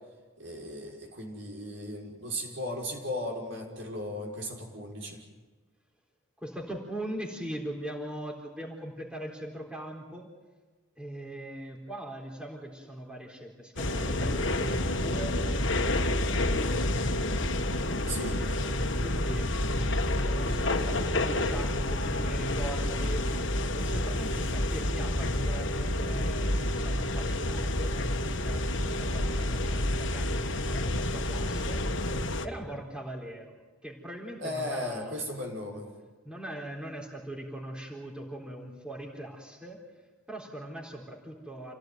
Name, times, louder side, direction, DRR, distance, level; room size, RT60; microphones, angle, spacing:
voice 1, 0.4-5.2 18.1-18.6 34.4-35.9, left 1 dB, 70° right, 0 dB, 5.9 m, -36 dB
voice 2, 6.4-10.3 11.0-17.2 18.0-19.5 20.2-32.0 32.4-33.6 33.8-35.3 36.2-41.7, right 1 dB, 5° right, -1 dB, 3.8 m, -41 dB
sound 1, 13.8-32.5, left 1 dB, 65° left, 1.6 m, -29 dB
28.0 x 17.0 x 9.4 m, 1.3 s
head